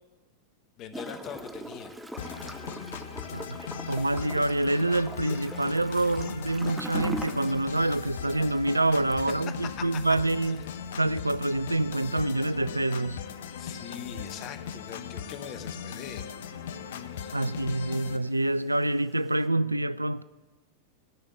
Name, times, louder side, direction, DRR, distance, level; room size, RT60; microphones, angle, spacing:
voice 1, 0.8-1.9 9.1-9.4 9.9-10.0 13.6-16.3 17.1-17.8, left 8 dB, 35° left, 1.0 m, -42 dB
Gurgling / Toilet flush, 0.9-19.5, right 1 dB, 5° right, 0.8 m, -44 dB
sound 1, 2.2-18.2, left 7 dB, 60° left, 0.6 m, -39 dB
voice 2, 3.9-10.6 11.0-13.2 17.3-20.2, right 2 dB, 85° right, 0.3 m, -26 dB
sound 2, 6.1-12.4, right 1 dB, 60° right, 4.5 m, -54 dB
12.5 x 5.5 x 7.9 m
figure-of-eight pair, 90°, 0 cm